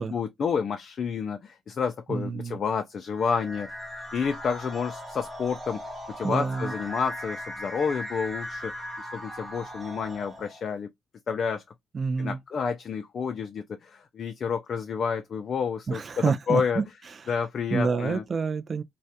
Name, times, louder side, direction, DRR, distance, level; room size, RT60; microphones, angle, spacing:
voice 1, 0.0-3.7 4.1-5.8 6.2-8.7 9.1-10.9 11.3-11.6 12.2-16.0 16.5-16.8 17.3-18.2, left 6 dB, 50° left, 0.3 m, -29 dB
voice 2, 2.1-2.6 6.2-6.7 11.9-12.4 15.9-16.8 17.7-18.8, right 5 dB, 40° right, 0.3 m, -28 dB
sound 1, 3.1-10.7, left 1 dB, 10° right, 0.9 m, -39 dB
2.3 x 2.1 x 2.6 m
cardioid pair, 90°, 0 cm